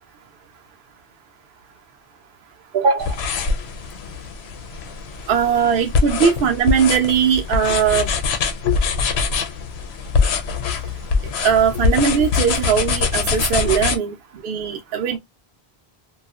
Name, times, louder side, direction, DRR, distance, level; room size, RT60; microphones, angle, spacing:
voice 1, 2.7-3.2 5.3-8.1 11.4-14.2 14.4-15.2, right 7 dB, 70° right, 0.8 m, -19 dB
sound 1, 3.0-14.0, left 5 dB, 85° left, 0.8 m, -23 dB
2.6 x 2.3 x 2.3 m
omnidirectional pair, 1.1 m